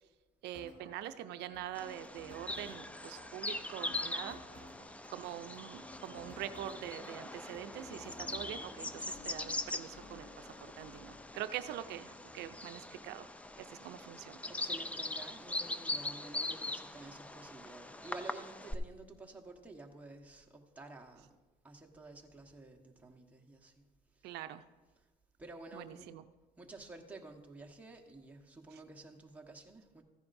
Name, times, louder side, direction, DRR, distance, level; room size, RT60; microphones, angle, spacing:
voice 1, 0.4-4.6 5.1-13.3 13.6-14.4 24.2-24.6 25.7-26.2 28.7-28.8, right 12 dB, 80° right, 10 dB, 0.5 m, -44 dB
sound 1, 0.5-8.6, equal, 30° left, 3.5 m, -55 dB
Bird vocalization bird call bird song, 1.7-18.7, left 2 dB, 10° left, 0.5 m, -42 dB
sound 2, 7.7-13.8, left 4 dB, 55° left, 1.2 m, -57 dB
voice 2, 14.5-21.3 21.6-23.8 24.1-24.4 25.4-26.1 26.6-30.0, right 2 dB, 10° right, 1 dB, 1.3 m, -51 dB
14.5 x 10.5 x 2.6 m, 1.2 s
cardioid pair, 110°, 17 cm